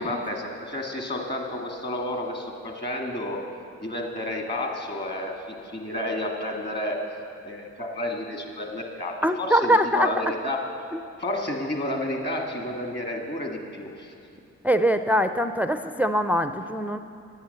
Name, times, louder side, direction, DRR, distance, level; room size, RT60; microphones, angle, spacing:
voice 1, 0.0-3.4 3.8-7.0 7.4-10.7 11.2-14.1, left 1 dB, 35° left, 2 dB, 2.1 m, -31 dB
voice 2, 9.2-10.1 14.6-17.0, equal, 5° right, 9 dB, 0.4 m, -23 dB
10.0 x 8.8 x 6.8 m, 2.5 s
supercardioid pair, 60°, 31 cm